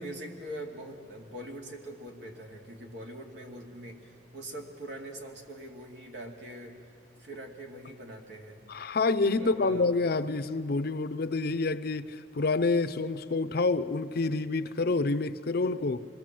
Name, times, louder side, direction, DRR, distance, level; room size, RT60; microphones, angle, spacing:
voice 1, 0.0-6.8 7.2-8.6 9.4-9.9, right 1 dB, 80° right, 2.6 m, -43 dB
voice 2, 8.7-16.0, left 3 dB, 60° left, 0.6 m, -28 dB
26.0 x 20.5 x 7.6 m
head